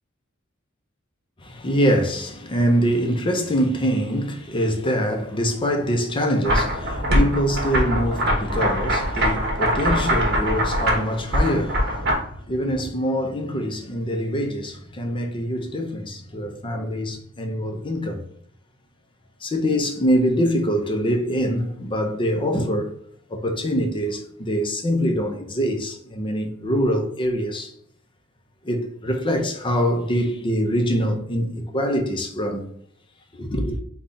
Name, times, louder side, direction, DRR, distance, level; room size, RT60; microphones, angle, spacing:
voice 1, 1.4-12.2 12.5-18.2 19.4-22.9 23.3-27.7 28.6-32.6 33.3-33.8, equal, 25° left, 0.6 m, -24 dB
sound 1, 6.4-12.1, equal, 55° right, 1.0 m, -22 dB
3.8 x 2.3 x 3.9 m
head